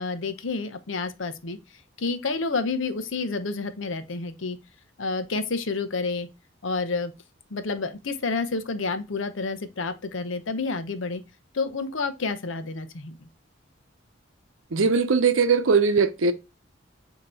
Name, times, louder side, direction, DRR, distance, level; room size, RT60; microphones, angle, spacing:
voice 1, 0.0-1.6 2.0-4.6 5.0-6.3 6.6-7.1 7.5-11.2 11.5-13.3, left 3 dB, 75° left, 0.7 m, -29 dB
voice 2, 14.7-16.3, right 5 dB, 85° right, 0.7 m, -20 dB
7.5 x 2.9 x 4.3 m
head